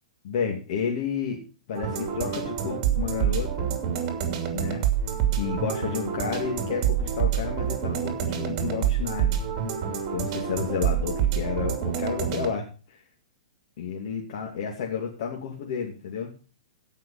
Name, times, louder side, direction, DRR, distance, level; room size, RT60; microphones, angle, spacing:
voice 1, 0.2-3.7 4.5-4.8 5.4-9.4 10.1-13.0 13.8-16.3, left 6 dB, 55° left, -1 dB, 2.6 m, -31 dB
sound 1, 1.7-12.5, right 8 dB, 35° right, 2.7 m, -27 dB
16.5 x 5.7 x 5.6 m, 0.35 s
hypercardioid pair, 135°, 4 cm